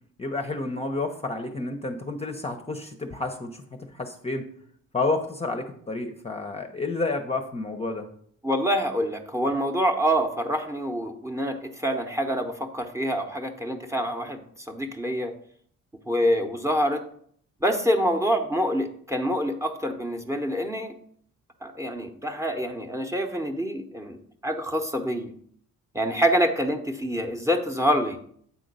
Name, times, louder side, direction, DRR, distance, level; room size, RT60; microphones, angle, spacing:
voice 1, 0.2-4.5 4.9-8.1, left 3 dB, 20° left, 4 dB, 0.8 m, -30 dB
voice 2, 8.4-14.4 14.7-15.3 16.1-17.0 17.6-20.9 21.6-25.3 25.9-28.2, equal, 10° right, 5 dB, 0.9 m, -26 dB
8.5 x 3.8 x 5.3 m, 0.63 s
cardioid pair, 90°, 30 cm